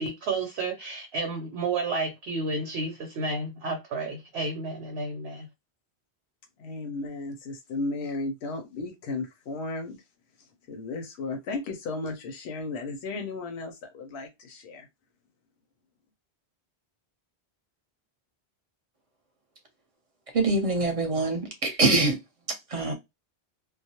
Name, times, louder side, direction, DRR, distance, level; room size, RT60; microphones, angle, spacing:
voice 1, 0.0-5.5, right 3 dB, 75° right, 0.9 m, -31 dB
voice 2, 6.6-10.0 10.4-14.9, left 3 dB, 90° left, 0.9 m, -35 dB
voice 3, 20.3-22.2 22.7-22.9, right 2 dB, 35° right, 0.7 m, -24 dB
2.3 x 2.0 x 2.8 m
omnidirectional pair, 1.1 m